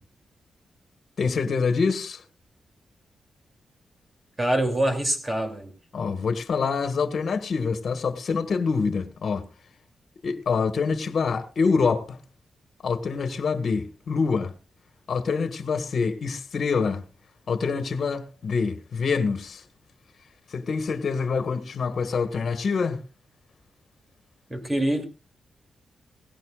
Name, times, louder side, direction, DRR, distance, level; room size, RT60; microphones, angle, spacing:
voice 1, 1.2-2.2 5.9-9.4 10.2-12.2 12.8-14.5 15.1-17.0 17.5-19.6 20.5-23.0, left 5 dB, 55° left, 1.7 m, -26 dB
voice 2, 4.4-5.7 24.5-25.0, right 1 dB, 20° right, 3.0 m, -25 dB
18.0 x 16.5 x 2.5 m
cardioid pair, 110°, 0 cm